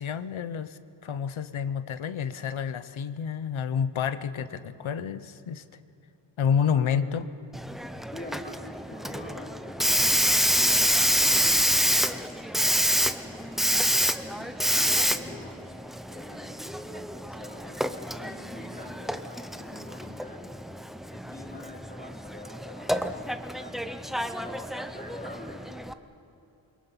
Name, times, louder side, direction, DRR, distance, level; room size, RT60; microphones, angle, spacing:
voice 1, 0.0-5.6 6.4-7.3, left 7 dB, 80° left, 13 dB, 0.9 m, -29 dB
voice 2, 6.7-7.0 8.1-12.3 13.1-13.9 14.2-15.6 16.1-16.6 16.9-20.4 21.1-25.6, left 2 dB, 20° left, -1 dB, 3.2 m, -44 dB
Hiss, 7.5-25.9, equal, ahead, 0.5 m, -27 dB
28.5 x 22.5 x 5.8 m, 2.7 s
wide cardioid pair, 180°, 47 cm